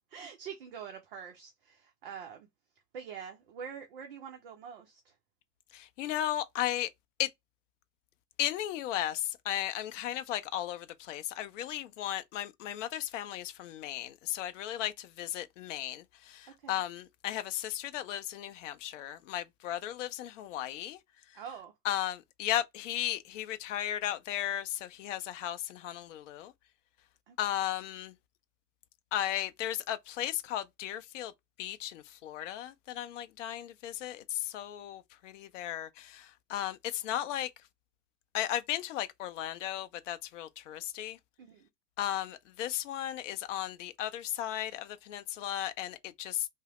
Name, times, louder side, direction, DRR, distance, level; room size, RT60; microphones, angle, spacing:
voice 1, 0.1-2.5 2.9-5.1 16.6-16.8 21.3-21.7 27.3-27.4 41.4-41.7, right 7 dB, 40° right, 0.4 m, -45 dB
voice 2, 5.7-6.9 7.2-7.3 8.4-21.0 21.8-26.5 27.4-28.1 29.1-31.3 31.6-37.5 38.3-41.2 42.0-46.5, left 12 dB, 50° left, 0.5 m, -35 dB
2.8 x 2.0 x 2.8 m
hypercardioid pair, 120°, 49 cm